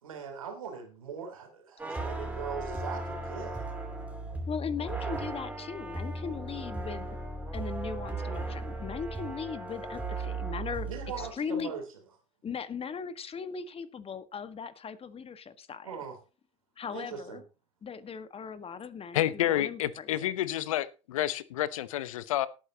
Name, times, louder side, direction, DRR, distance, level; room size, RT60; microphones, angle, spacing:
voice 1, 0.0-3.7 10.9-11.8 15.8-16.2 16.9-17.4, right 6 dB, 85° right, 3 dB, 3.2 m, -40 dB
sound 1, 1.8-11.3, right 2 dB, 10° right, 3.2 m, -36 dB
voice 2, 4.5-7.1 7.5-10.9 11.2-11.7 12.4-16.0 16.8-17.4 17.8-20.3, left 6 dB, 35° left, 12 dB, 1.6 m, -38 dB
voice 3, 19.1-22.5, left 13 dB, 75° left, 18 dB, 0.9 m, -29 dB
18.0 x 9.0 x 2.9 m, 0.32 s
figure-of-eight pair, 60°, 17 cm